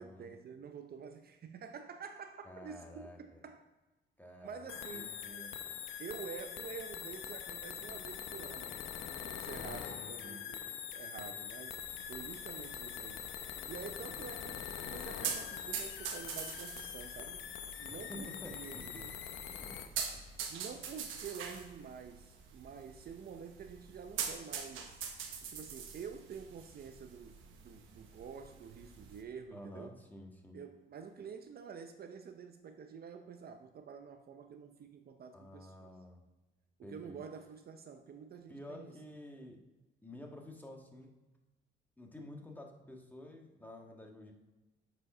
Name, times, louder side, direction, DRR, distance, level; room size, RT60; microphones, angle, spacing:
voice 1, 0.0-3.7 4.4-5.1 6.0-8.8 9.2-13.3 13.7-19.2 20.5-25.0 25.4-30.0 30.5-35.9 36.8-39.0, right 6 dB, 50° right, 7 dB, 0.6 m, -48 dB
voice 2, 2.4-3.4 4.2-5.5 9.5-10.4 17.9-19.0 19.4-19.7 20.1-20.3 29.5-30.6 35.3-36.2 36.8-37.2 38.5-39.6 40.0-41.1 42.0-44.3, left 1 dB, 10° left, 1 dB, 1.5 m, -50 dB
sound 1, 4.7-19.9, left 9 dB, 80° left, 0.7 m, -44 dB
sound 2, 11.8-29.2, right 7 dB, 85° right, 1.1 m, -45 dB
8.3 x 5.2 x 5.5 m, 1.1 s
cardioid pair, 90°, 20 cm